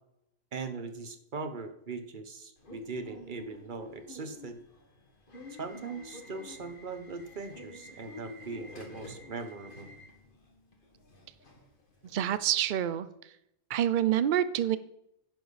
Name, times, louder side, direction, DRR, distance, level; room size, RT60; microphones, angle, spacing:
voice 1, 0.5-4.6 5.6-9.9, right 4 dB, 35° right, 8 dB, 1.1 m, -40 dB
Subway metro underground / Alarm, 2.6-12.4, left 2 dB, 35° left, 2.0 m, -49 dB
voice 2, 12.0-13.3 13.7-14.8, right 11 dB, 85° right, 14 dB, 0.4 m, -27 dB
11.0 x 10.5 x 4.1 m, 0.80 s
omnidirectional pair, 1.5 m